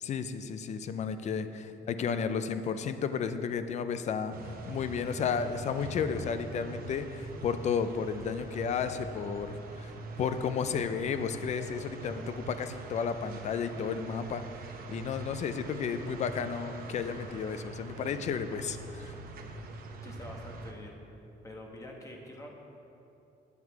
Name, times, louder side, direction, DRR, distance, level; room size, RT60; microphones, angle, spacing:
voice 1, 0.0-9.9 10.2-14.5 14.9-19.1, left 6 dB, 40° left, 10 dB, 0.5 m, -33 dB
sound 1, 4.3-20.7, right 2 dB, 55° right, 0.9 m, -43 dB
voice 2, 20.0-21.0 21.4-22.5, left 1 dB, 20° left, 0 dB, 1.2 m, -46 dB
9.5 x 8.2 x 4.6 m, 2.9 s
cardioid pair, 160°, 18 cm